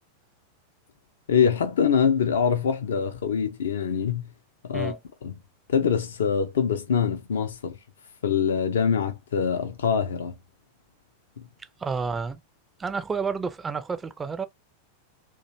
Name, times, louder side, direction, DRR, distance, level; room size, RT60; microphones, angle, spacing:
voice 1, 1.3-4.3 4.6-5.4 5.7-7.8 8.2-10.4 11.4-11.5, left 7 dB, 65° left, 0.4 m, -24 dB
voice 2, 11.8-12.4 12.8-14.5, right 5 dB, 15° right, 0.4 m, -30 dB
2.4 x 2.1 x 2.9 m
figure-of-eight pair, 90°, 0 cm